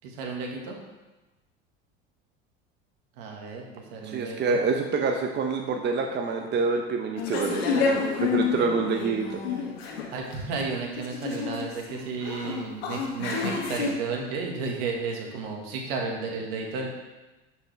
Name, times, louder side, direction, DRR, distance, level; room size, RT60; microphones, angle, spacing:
voice 1, 0.0-0.8 3.2-4.6 10.1-16.9, right 4 dB, 70° right, 0 dB, 1.8 m, -33 dB
voice 2, 4.0-9.4, right 4 dB, 35° right, 3 dB, 0.9 m, -27 dB
sound 1, 7.2-13.9, left 5 dB, 80° left, 1.6 m, -29 dB
11.5 x 5.5 x 3.4 m, 1.1 s
hypercardioid pair, 80°, 31 cm